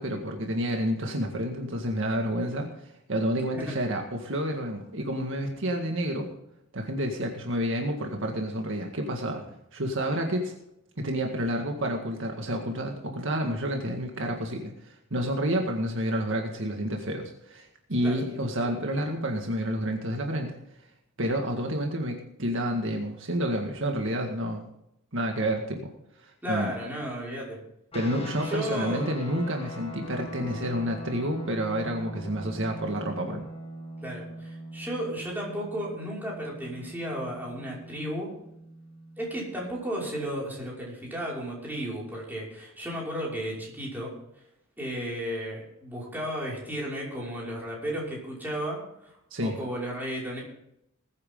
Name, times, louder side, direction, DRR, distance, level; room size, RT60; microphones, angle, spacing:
voice 1, 0.0-6.3 6.7-9.4 9.7-10.5 11.0-20.6 21.2-24.7 25.1-25.9 26.2-26.7 27.9-33.4 49.3-49.6, equal, 65° right, 3 dB, 1.9 m, -29 dB
voice 2, 26.4-27.6 28.4-29.1 34.0-38.3 39.2-44.1 44.8-50.4, equal, 10° right, -5 dB, 5.7 m, -34 dB
sound 1, 27.9-39.7, equal, 30° left, 2.0 m, -41 dB
20.5 x 9.5 x 3.8 m, 0.79 s
head